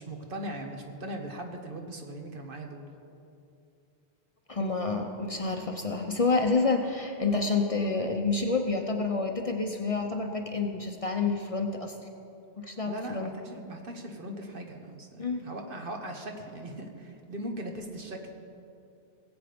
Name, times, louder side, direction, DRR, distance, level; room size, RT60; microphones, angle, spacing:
voice 1, 0.0-2.8 12.8-18.2, right 1 dB, 60° right, 3 dB, 1.4 m, -39 dB
voice 2, 4.5-12.0 12.6-13.3 15.2-15.5, left 3 dB, 35° left, 3 dB, 0.8 m, -28 dB
18.5 x 8.1 x 5.1 m, 2.6 s
omnidirectional pair, 1.1 m